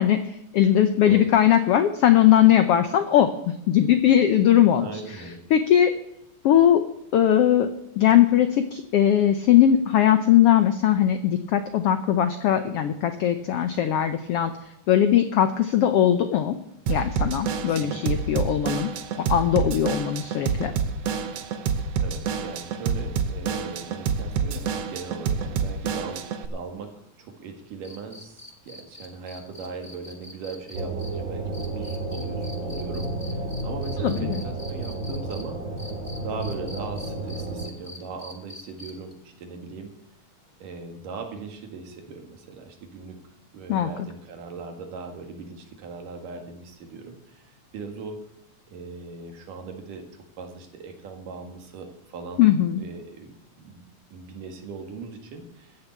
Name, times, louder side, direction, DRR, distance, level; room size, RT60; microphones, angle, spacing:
voice 1, 0.0-5.9 6.4-6.8 7.1-7.7 8.0-14.5 14.9-16.6 16.9-18.9 19.3-20.7 34.0-34.4 43.7-43.9 52.4-52.8, left 10 dB, 85° left, 9 dB, 1.3 m, -20 dB
voice 2, 1.0-1.3 4.8-5.4 17.6-18.2 22.0-35.6 36.2-39.9 40.6-43.2 43.5-48.2 48.7-50.0 50.4-52.4 52.7-53.9 54.1-55.8, right 4 dB, 85° right, 4 dB, 3.5 m, -39 dB
Drum kit / Drum, 16.9-26.5, right 6 dB, 65° right, 1.8 m, -28 dB
sound 1, 27.8-35.4 35.8-39.1 40.8-40.9, left 1 dB, 25° left, 0.8 m, -44 dB
sound 2, 30.7-37.7, right 2 dB, 35° right, 2.0 m, -31 dB
15.0 x 6.9 x 8.3 m, 0.81 s
omnidirectional pair, 3.6 m